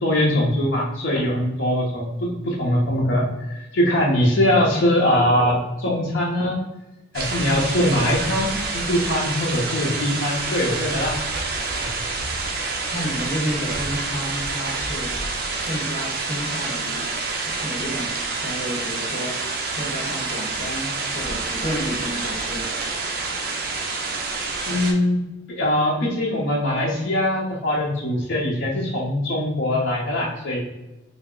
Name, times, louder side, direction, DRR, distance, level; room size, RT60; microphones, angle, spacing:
voice 1, 0.0-6.6 7.1-11.2 11.8-12.0 24.7-25.2 25.6-30.6, left 1 dB, 90° left, -4 dB, 0.6 m, -22 dB
sound 1, 7.1-24.9, right 3 dB, 50° right, 0.5 m, -28 dB
voice 2, 12.9-15.1 15.6-17.1 17.4-18.1 18.4-19.4 19.8-22.7, equal, 50° left, -2 dB, 0.9 m, -30 dB
3.4 x 2.0 x 3.7 m, 0.98 s
head